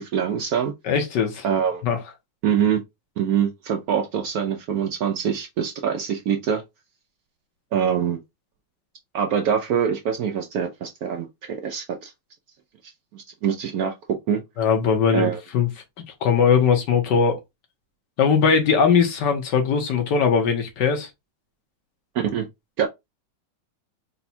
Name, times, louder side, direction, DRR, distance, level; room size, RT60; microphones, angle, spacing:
voice 1, 0.0-0.7 1.4-1.8 2.4-2.8 3.2-6.6 7.7-8.2 9.1-12.1 13.1-13.9 14.3-14.4 15.1-15.4 22.1-22.5 22.8-22.9, right 8 dB, 70° right, 0.9 m, -24 dB
voice 2, 0.8-1.4 1.8-2.0 14.6-15.7 16.2-17.4 18.2-21.1, left 6 dB, 70° left, 1.6 m, -20 dB
4.3 x 2.2 x 4.2 m
omnidirectional pair, 2.0 m